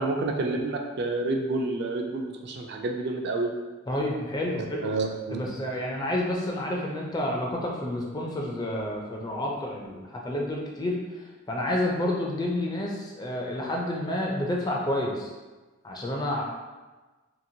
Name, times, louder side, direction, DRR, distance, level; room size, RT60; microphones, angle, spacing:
voice 1, 0.0-3.6 4.8-5.4, right 2 dB, 55° right, 2 dB, 0.4 m, -29 dB
voice 2, 3.9-5.0 5.3-15.3 15.8-16.4, left 1 dB, 20° left, -1 dB, 0.4 m, -29 dB
2.9 x 2.5 x 2.7 m, 1.2 s
head